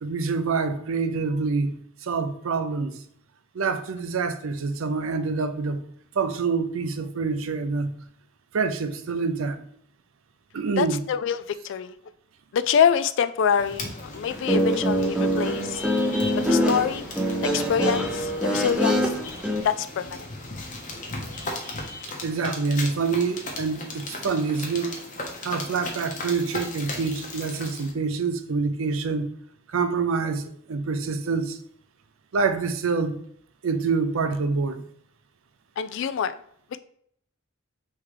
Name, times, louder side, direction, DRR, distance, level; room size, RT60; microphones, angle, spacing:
voice 1, 0.0-3.0 3.5-5.8 6.1-7.9 8.5-9.6 10.5-11.0 22.1-25.0 25.4-29.3 29.7-31.6 32.3-33.2 33.6-34.9, right 4 dB, 75° right, 0.5 m, -26 dB
voice 2, 10.8-11.9 12.5-15.8 16.5-17.1 17.5-19.1 19.6-20.3 35.8-36.3, left 7 dB, 60° left, 0.3 m, -25 dB
sound 1, 13.5-27.9, left 2 dB, 40° left, 0.9 m, -37 dB
Guitar, 14.3-19.6, equal, 5° right, 0.5 m, -24 dB
3.6 x 3.1 x 4.7 m
head